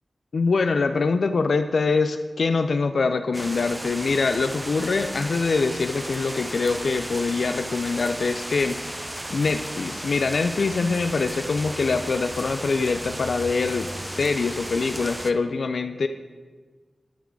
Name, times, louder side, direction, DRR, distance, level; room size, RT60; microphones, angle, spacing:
voice 1, 0.3-16.1, left 4 dB, 75° left, 8 dB, 0.3 m, -24 dB
sound 1, 3.3-15.3, right 1 dB, 15° right, 0.5 m, -35 dB
10.0 x 3.8 x 6.0 m, 1.4 s
cardioid pair, 55°, 0 cm